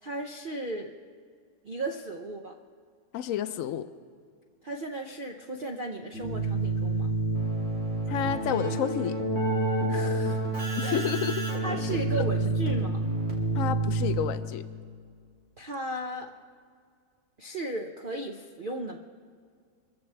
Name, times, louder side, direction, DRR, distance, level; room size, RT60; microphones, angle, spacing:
voice 1, 0.0-0.9 1.6-2.5 4.6-7.1 9.9-10.4 10.8-11.0 11.6-13.0 15.6-16.3 17.4-19.0, right 2 dB, 80° right, 3 dB, 0.4 m, -35 dB
voice 2, 3.1-3.9 8.1-9.1 10.8-11.6 12.1-12.2 13.5-14.6, left 10 dB, 80° left, 11 dB, 0.7 m, -30 dB
Keyboard (musical), 6.1-14.5, right 2 dB, 40° right, 3.0 m, -28 dB
25.5 x 14.5 x 3.3 m, 2.1 s
omnidirectional pair, 1.9 m